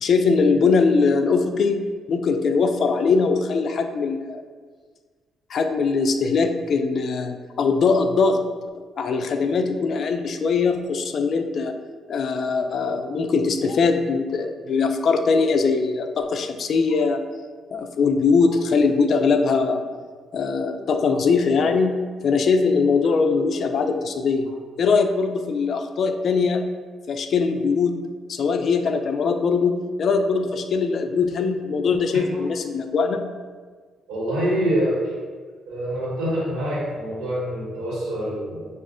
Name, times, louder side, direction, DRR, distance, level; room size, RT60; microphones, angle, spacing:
voice 1, 0.0-1.8 2.1-4.4 5.5-8.4 9.0-11.7 12.1-17.2 17.7-19.8 20.3-24.5 24.8-26.7 27.1-27.9 28.3-33.2, left 4 dB, 60° left, 7 dB, 0.3 m, -21 dB
voice 2, 34.1-35.1 35.6-38.7, equal, 80° right, -6 dB, 1.3 m, -25 dB
6.1 x 2.4 x 2.5 m, 1.5 s
cardioid pair, 90°, 0 cm